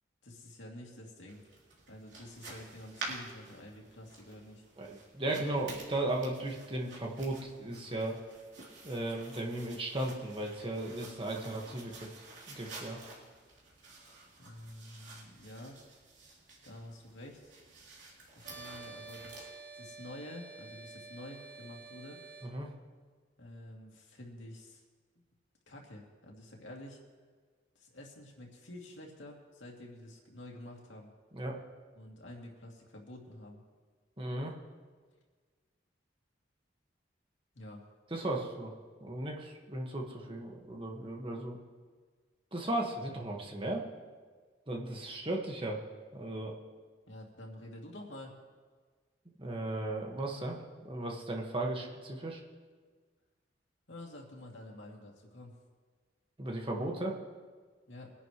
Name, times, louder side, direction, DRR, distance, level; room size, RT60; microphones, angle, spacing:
voice 1, 0.2-1.4 1.9-4.6 11.3-11.5 14.4-15.8 16.6-17.5 18.3-19.5 19.7-22.2 23.4-24.8 25.7-27.0 27.7-31.1 32.0-33.6 37.5-37.8 47.1-48.4 53.9-55.6 57.9-58.1, left 1 dB, 90° left, -1 dB, 2.6 m, -49 dB
sound 1, 1.3-19.5, right 3 dB, 75° right, 3.4 m, -50 dB
voice 2, 4.8-8.1 8.8-12.1 12.5-13.0 22.4-22.7 31.3-31.6 34.2-34.5 38.1-38.7 39.0-41.6 42.5-43.8 44.7-45.8 46.1-46.5 49.4-50.6 50.8-52.4 56.4-57.2, right 1 dB, 30° right, 0 dB, 1.7 m, -36 dB
sound 2, 18.4-22.5, right 3 dB, 50° right, 2.9 m, -49 dB
22.5 x 11.0 x 3.2 m, 1.5 s
head